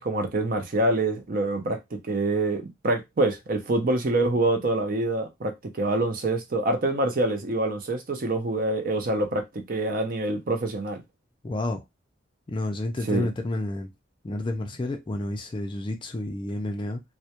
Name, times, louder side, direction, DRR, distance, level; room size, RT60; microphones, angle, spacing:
voice 1, 0.0-11.0 13.1-13.3, right 2 dB, 45° right, 0.5 m, -26 dB
voice 2, 11.4-11.8 12.5-13.9 14.2-17.0, left 1 dB, 25° left, 0.3 m, -30 dB
2.2 x 2.1 x 2.8 m
head